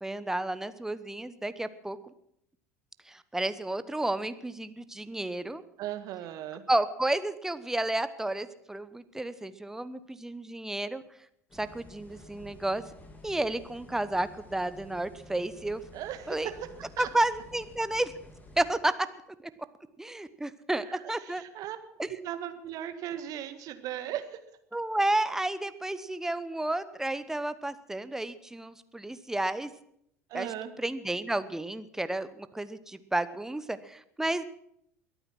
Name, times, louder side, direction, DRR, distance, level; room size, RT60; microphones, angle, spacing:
voice 1, 0.0-2.0 3.0-5.6 6.7-11.0 11.5-12.8 13.2-15.8 16.3-16.5 17.0-18.1 18.6-18.9 19.4-19.5 20.0-21.4 22.0-22.2 24.7-29.7 30.3-34.4, right 1 dB, 5° right, 13 dB, 1.0 m, -31 dB
voice 2, 5.8-6.6 15.9-16.6 17.0-17.1 21.3-21.8 22.1-24.4 30.3-30.7, right 11 dB, 45° right, 9 dB, 1.7 m, -37 dB
sound 1, 11.5-18.7, left 1 dB, 20° left, 2.7 m, -51 dB
22.5 x 9.0 x 6.2 m, 0.74 s
figure-of-eight pair, 75°, 8 cm